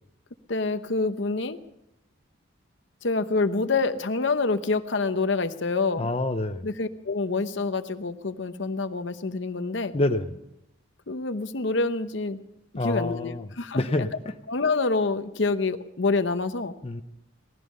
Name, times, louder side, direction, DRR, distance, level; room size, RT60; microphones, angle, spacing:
voice 1, 0.5-1.6 3.0-6.1 6.6-9.9 11.1-12.4 12.8-14.1 14.5-16.7, left 3 dB, 60° left, 10 dB, 0.8 m, -27 dB
voice 2, 6.0-6.7 9.9-10.4 12.8-13.5 13.7-14.3 16.8-17.0, left 2 dB, 30° left, 6 dB, 0.7 m, -27 dB
18.5 x 14.0 x 5.5 m, 0.84 s
head